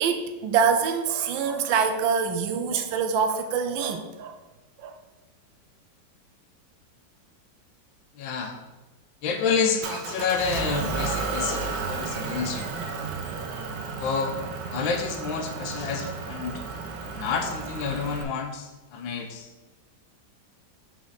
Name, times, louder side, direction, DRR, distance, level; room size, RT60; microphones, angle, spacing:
voice 1, 0.0-4.4 4.8-5.0, right 6 dB, 90° right, 6 dB, 1.4 m, -25 dB
voice 2, 8.2-8.6 9.2-12.7 14.0-14.3 14.7-16.6 17.1-19.5, left 5 dB, 85° left, 5 dB, 1.5 m, -29 dB
Motor vehicle (road) / Engine, 9.8-18.2, right 4 dB, 70° right, 1.4 m, -33 dB
6.2 x 5.8 x 4.0 m, 1.1 s
omnidirectional pair, 2.0 m